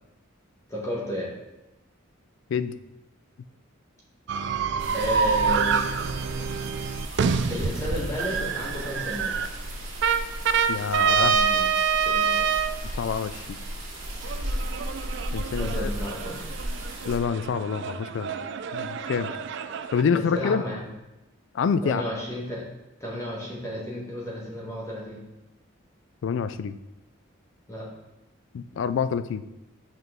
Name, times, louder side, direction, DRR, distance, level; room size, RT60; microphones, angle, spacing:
voice 1, 0.7-1.3 4.9-5.8 7.5-9.3 10.9-11.7 12.0-12.5 15.6-16.4 20.1-20.9 21.8-22.6 23.0-25.2 27.7-27.9, equal, 15° left, -4 dB, 1.2 m, -32 dB
sound 1, 4.3-9.5 10.0-12.8 14.2-20.0, right 6 dB, 60° right, 0.3 m, -27 dB
sound 2, 4.8-17.2, right 1 dB, 85° right, 2.0 m, -35 dB
voice 2, 10.7-11.3 12.9-13.6 15.3-15.9 17.0-18.3 18.7-19.3 19.9-20.6 21.5-22.0 26.2-26.8 28.5-29.4, left 6 dB, 60° left, 13 dB, 0.3 m, -27 dB
5.8 x 5.5 x 3.6 m, 0.98 s
head